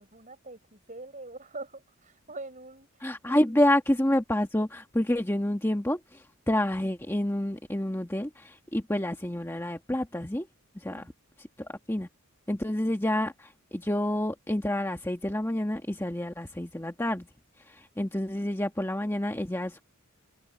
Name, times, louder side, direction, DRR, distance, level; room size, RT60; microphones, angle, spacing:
voice 1, 0.0-3.6 10.9-11.1, right 2 dB, 35° right, 7.6 m, -44 dB
voice 2, 3.0-10.5 10.7-11.0 11.6-12.1 12.5-17.3 17.7-19.8, left 1 dB, 10° left, 1.4 m, -28 dB
head